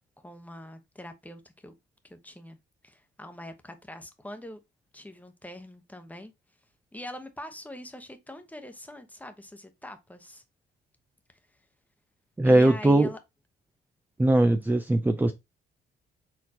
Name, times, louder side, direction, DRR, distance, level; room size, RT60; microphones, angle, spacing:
voice 1, 0.2-1.7 2.0-2.6 2.8-4.6 4.9-6.3 6.9-10.4 12.4-13.2, left 1 dB, 10° left, 0.9 m, -43 dB
voice 2, 12.4-13.1 14.2-15.3, right 1 dB, 10° right, 0.4 m, -20 dB
4.4 x 3.7 x 2.9 m
cardioid pair, 90°, 20 cm